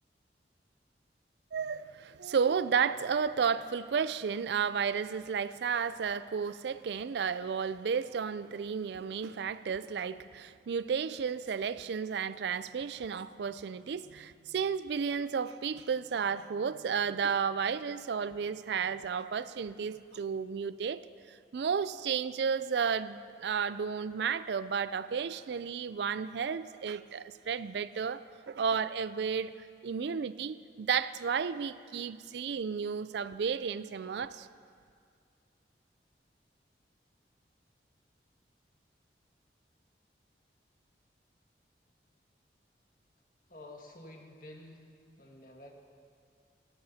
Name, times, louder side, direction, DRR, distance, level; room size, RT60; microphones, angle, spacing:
voice 1, 1.5-21.0 21.3-34.5, right 6 dB, 75° right, 0.4 m, -32 dB
voice 2, 43.5-44.9 45.2-45.7, left 1 dB, 50° left, 1.7 m, -50 dB
24.0 x 13.0 x 2.8 m
head